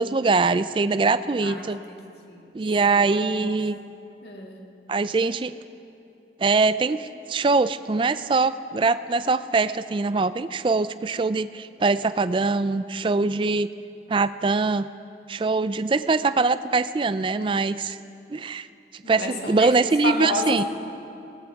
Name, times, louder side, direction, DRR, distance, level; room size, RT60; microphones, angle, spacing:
voice 1, 0.0-1.8 2.5-3.8 4.9-5.5 6.4-13.7 14.1-14.9 15.3-18.0 18.3-18.7 19.1-20.6, right 3 dB, 30° right, 14 dB, 0.3 m, -23 dB
voice 2, 1.4-2.0 2.3-2.5 2.8-3.5 4.2-4.6 19.0-20.6, left 2 dB, 70° left, 1 dB, 1.9 m, -31 dB
20.0 x 18.0 x 3.6 m, 2.7 s
head